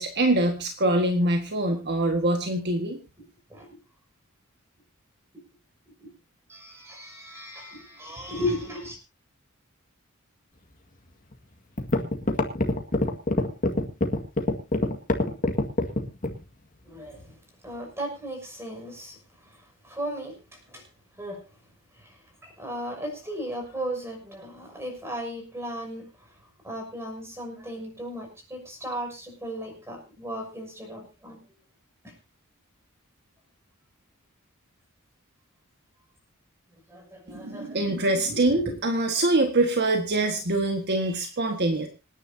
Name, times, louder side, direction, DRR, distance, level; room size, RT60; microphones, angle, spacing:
voice 1, 0.0-3.0 37.3-41.9, right 2 dB, 50° right, 4 dB, 1.7 m, -24 dB
voice 2, 6.5-9.0 16.8-17.4 17.6-19.2 19.4-20.8 21.2-21.4 22.0-26.1 26.6-31.4 32.0-32.1 36.9-37.9 38.3-38.8, equal, 10° right, 2 dB, 6.4 m, -36 dB
sound 1, 11.3-11.4 11.8-16.4, left 2 dB, 40° left, 1.9 m, -24 dB
26.5 x 10.0 x 2.8 m, 0.28 s
head